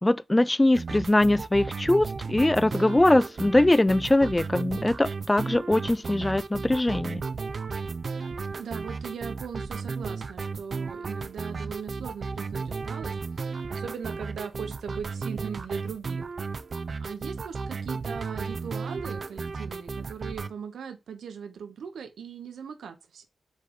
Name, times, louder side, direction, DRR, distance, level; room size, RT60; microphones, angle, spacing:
voice 1, 0.0-7.2, left 1 dB, 20° left, 0.4 m, -22 dB
sound 1, 0.7-20.5, right 4 dB, 60° right, 0.6 m, -34 dB
voice 2, 8.6-13.2 13.7-16.3 17.0-23.2, right 7 dB, 85° right, 0.9 m, -39 dB
5.2 x 4.0 x 5.0 m
cardioid pair, 45°, 0 cm